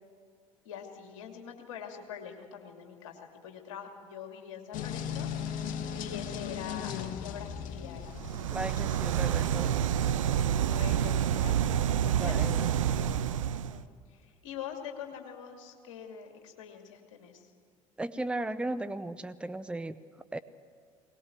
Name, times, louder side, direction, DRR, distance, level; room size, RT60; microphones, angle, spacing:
voice 1, 0.6-5.3 5.9-8.2 9.1-9.2 10.6-11.6 12.2-12.8 13.5-17.5, left 8 dB, 70° left, 3 dB, 2.7 m, -44 dB
sound 1, 4.7-10.3, left 8 dB, 55° left, 1.6 m, -38 dB
sound 2, 8.1-13.8, right 9 dB, 75° right, 0.6 m, -28 dB
voice 2, 8.5-9.9 12.1-12.7 18.0-20.0 20.3-20.4, right 2 dB, 5° right, 14 dB, 0.7 m, -36 dB
21.5 x 19.5 x 7.9 m, 2.1 s
figure-of-eight pair, 60°, 17 cm